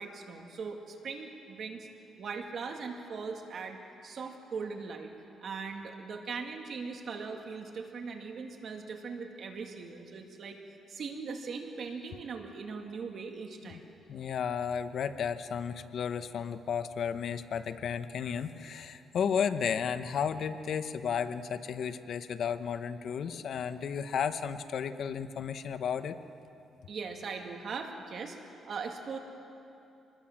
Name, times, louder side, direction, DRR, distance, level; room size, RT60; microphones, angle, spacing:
voice 1, 0.0-1.9 2.2-5.1 5.4-10.6 10.9-13.9 26.9-29.2, right 5 dB, 55° right, 3 dB, 2.2 m, -40 dB
voice 2, 14.1-26.2, left 7 dB, 60° left, 10 dB, 0.9 m, -33 dB
26.0 x 20.5 x 7.4 m, 2.8 s
cardioid pair, 130°, 0 cm